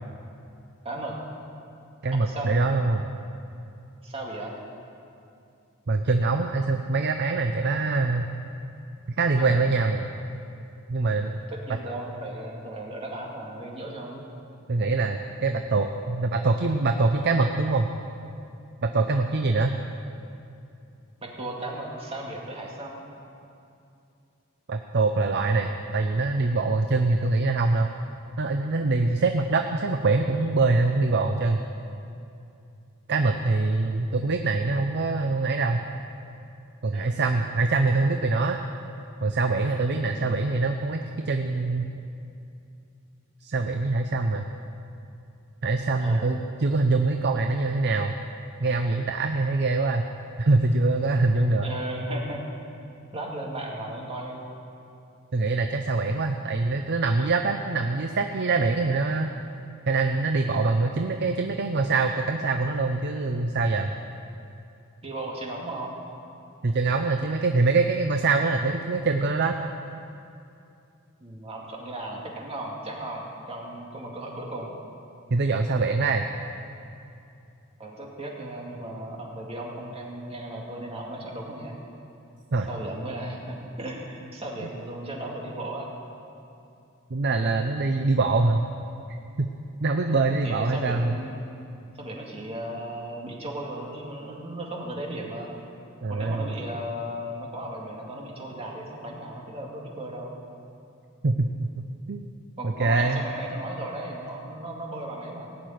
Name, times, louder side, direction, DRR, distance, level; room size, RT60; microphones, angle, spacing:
voice 1, 0.8-1.2 2.1-2.6 4.0-4.6 9.4-9.6 11.5-14.3 21.2-23.0 36.9-37.2 40.0-40.4 46.0-46.3 51.6-52.4 53.1-54.5 60.8-60.9 65.0-66.0 71.2-74.7 77.8-81.8 82.7-85.9 90.1-91.4 92.0-95.6 96.1-100.3 102.6-105.5, right 1 dB, 30° right, -2 dB, 2.2 m, -36 dB
voice 2, 2.0-3.1 5.9-8.3 9.2-10.1 10.9-11.4 14.7-17.9 18.8-19.8 24.7-27.9 28.4-31.6 33.1-35.8 36.8-38.6 39.2-41.9 43.4-44.5 45.6-48.2 48.6-50.1 50.4-51.7 55.3-59.3 59.9-64.0 66.6-69.6 75.3-76.3 82.5-82.7 87.1-88.7 89.4-89.5 89.8-91.2 96.0-96.5 101.2-101.7 102.1-102.3 102.6-103.2, right 3 dB, 50° right, 5 dB, 0.6 m, -24 dB
18.0 x 6.8 x 9.2 m, 2.6 s
head